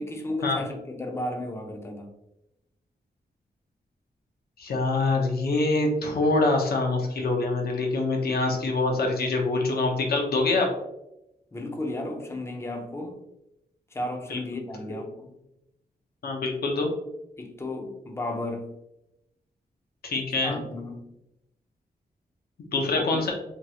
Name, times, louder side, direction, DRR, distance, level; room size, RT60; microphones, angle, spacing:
voice 1, 0.0-2.1 11.5-13.2 13.9-15.3 17.4-18.7 20.4-21.1 22.9-23.2, left 1 dB, 15° left, 3 dB, 0.5 m, -34 dB
voice 2, 4.6-10.7 14.3-14.4 16.2-16.9 20.0-20.6 22.7-23.3, left 3 dB, 75° left, 1 dB, 0.7 m, -25 dB
2.8 x 2.3 x 2.8 m, 0.87 s
wide cardioid pair, 105°, 16 cm